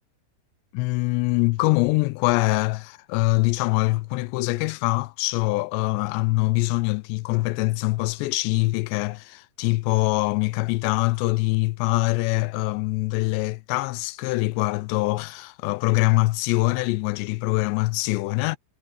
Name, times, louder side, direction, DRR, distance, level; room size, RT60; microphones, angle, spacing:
voice 1, 0.7-18.6, left 22 dB, 85° left, 2.6 m, -24 dB
omnidirectional pair, 5.3 m